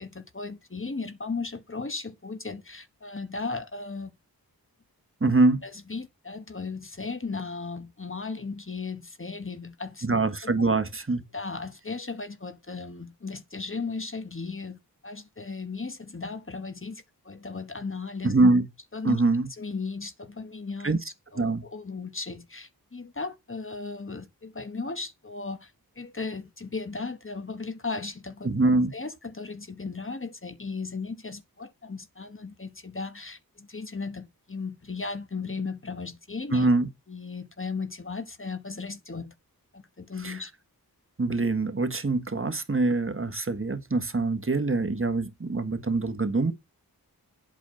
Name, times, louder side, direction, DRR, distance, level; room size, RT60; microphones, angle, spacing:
voice 1, 0.0-4.1 5.6-10.1 10.4-10.5 11.3-14.8 15.0-18.3 18.9-19.2 19.6-21.0 21.3-28.5 28.9-36.7 37.1-39.3 39.7-40.5, left 4 dB, 35° left, 1.3 m, -36 dB
voice 2, 5.2-5.6 10.0-11.2 18.2-18.6 19.0-19.5 20.8-21.0 21.4-21.6 28.4-28.9 36.5-36.9 40.2-40.4 41.2-46.5, right 3 dB, 35° right, 1.5 m, -24 dB
8.3 x 6.4 x 6.3 m
wide cardioid pair, 70°, 37 cm